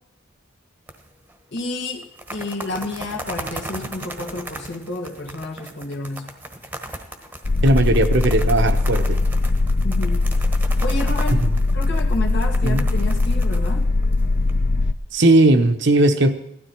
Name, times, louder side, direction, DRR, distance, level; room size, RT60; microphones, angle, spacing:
sound 1, 0.9-1.3 1.6-1.7 2.0-14.5, right 1 dB, 10° right, 1.3 m, -37 dB
voice 1, 1.5-6.4 9.8-10.3 10.8-11.5 11.7-13.9, left 2 dB, 60° left, 1 dB, 2.2 m, -30 dB
sound 2, 7.4-14.9, left 2 dB, 40° left, 0.5 m, -20 dB
voice 2, 7.6-9.2 12.6-12.8 15.1-16.3, right 1 dB, 60° right, 7 dB, 1.1 m, -17 dB
17.0 x 12.5 x 4.6 m, 0.82 s
head